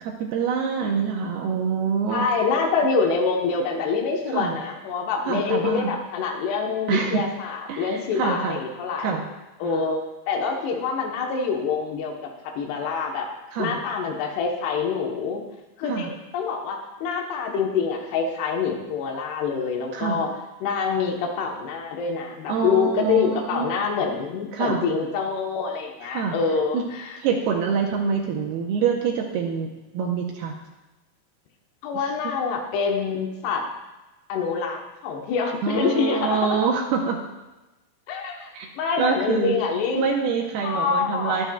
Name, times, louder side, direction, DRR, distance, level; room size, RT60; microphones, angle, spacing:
voice 1, 0.0-2.2 4.3-4.6 5.3-5.9 6.9-7.2 7.7-8.5 9.0-9.3 9.6-9.8 13.5-13.8 15.8-16.1 19.9-20.2 22.5-23.7 24.5-24.8 26.1-26.4 26.7-26.8 27.2-30.6 31.9-32.1 35.6-37.2 38.5-38.7 39.0-39.6 40.0-41.4, right 6 dB, 80° right, 1 dB, 2.7 m, -25 dB
voice 2, 2.1-9.1 9.6-10.0 10.3-12.3 12.6-13.3 13.6-15.4 15.8-20.3 20.6-27.2 31.8-33.6 34.3-36.6 38.1-40.0 40.6-41.4, left 5 dB, 90° left, 2 dB, 3.2 m, -26 dB
21.0 x 7.7 x 2.3 m, 1.1 s
omnidirectional pair, 4.6 m